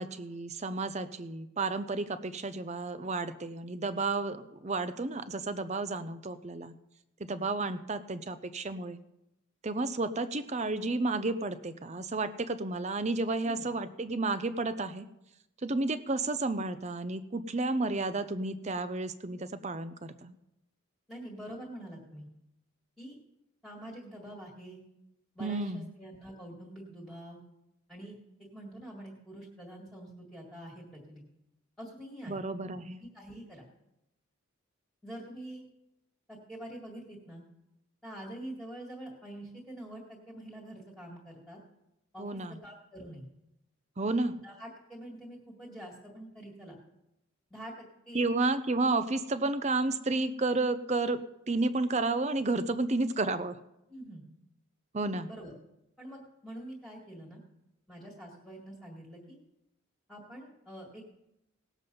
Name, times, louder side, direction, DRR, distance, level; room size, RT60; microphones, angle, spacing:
voice 1, 0.0-6.7 7.3-9.0 9.6-15.1 15.6-20.4 25.4-25.9 32.3-33.0 42.2-42.6 44.0-44.3 48.1-53.6 54.9-55.3, right 3 dB, 30° right, 12 dB, 0.6 m, -31 dB
voice 2, 21.1-22.3 23.0-23.2 23.6-24.8 25.4-27.4 27.9-28.2 28.5-31.2 31.8-32.4 33.0-33.6 35.0-35.6 36.3-37.4 38.0-41.6 42.1-42.3 42.6-43.2 44.4-46.8 47.5-48.3 53.9-54.2 55.3-55.5 56.0-57.4 57.9-59.4 60.1-61.2, right 1 dB, ahead, -4 dB, 1.9 m, -45 dB
18.5 x 7.4 x 5.3 m, 0.88 s
head